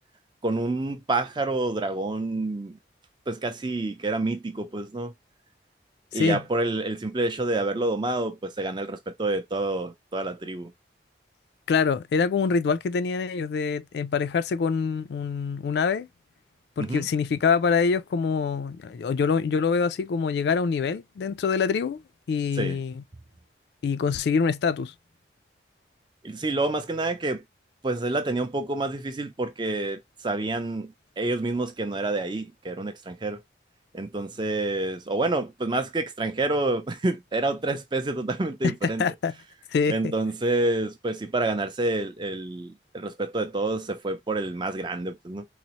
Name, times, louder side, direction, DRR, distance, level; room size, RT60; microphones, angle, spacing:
voice 1, 0.4-2.8 3.3-5.1 6.1-10.7 16.8-17.1 22.6-22.8 26.2-27.4 27.8-33.4 33.9-39.1 39.9-45.5, right 2 dB, 25° right, 0.5 m, -28 dB
voice 2, 11.7-16.1 16.8-22.0 22.3-23.0 23.8-24.9 38.6-39.3 39.7-40.1, left 5 dB, 70° left, 0.3 m, -25 dB
4.0 x 2.0 x 2.8 m
head